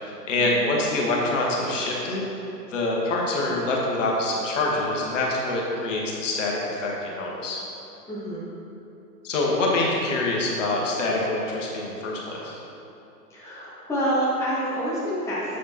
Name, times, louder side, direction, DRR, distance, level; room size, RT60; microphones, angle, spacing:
voice 1, 0.3-2.2 2.7-7.6 9.2-12.6, left 2 dB, 50° left, -2 dB, 1.3 m, -25 dB
voice 2, 8.1-8.4 13.3-15.6, equal, 5° left, -9 dB, 1.0 m, -27 dB
7.6 x 6.6 x 2.9 m, 2.9 s
figure-of-eight pair, 115°, 49 cm